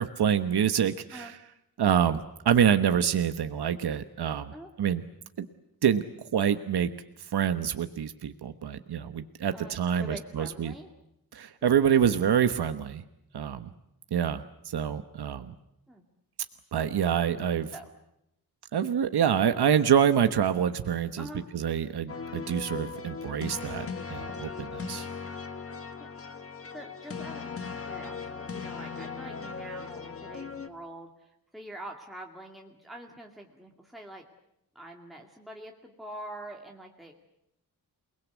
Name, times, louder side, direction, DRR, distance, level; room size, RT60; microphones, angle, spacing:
voice 1, 0.0-1.4 1.8-5.0 5.4-5.5 5.8-6.0 6.3-6.9 7.2-10.7 11.3-13.0 13.3-13.7 14.1-15.5 16.7-17.7 18.7-21.3 21.5-25.1, right 8 dB, 80° right, 10 dB, 1.2 m, -26 dB
voice 2, 9.5-10.9 11.7-12.1 15.9-16.0 17.7-17.9 21.2-21.5 26.0-26.1 26.7-34.3 34.7-37.1, right 1 dB, ahead, 0 dB, 2.3 m, -45 dB
sound 1, 22.1-30.7, left 5 dB, 35° left, 1.6 m, -38 dB
29.0 x 20.5 x 8.2 m, 0.83 s
wide cardioid pair, 165°, 38 cm